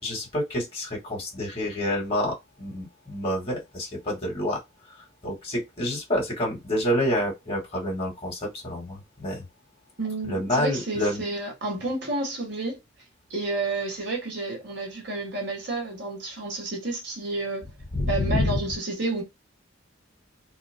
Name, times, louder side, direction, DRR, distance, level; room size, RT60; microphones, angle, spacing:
voice 1, 0.0-4.6 5.0-9.4 10.2-11.2 17.9-18.6, left 1 dB, 30° left, 2.0 m, -28 dB
voice 2, 10.0-12.8 13.3-17.6 18.1-19.2, right 2 dB, 65° right, 1.6 m, -30 dB
3.8 x 2.3 x 3.6 m
head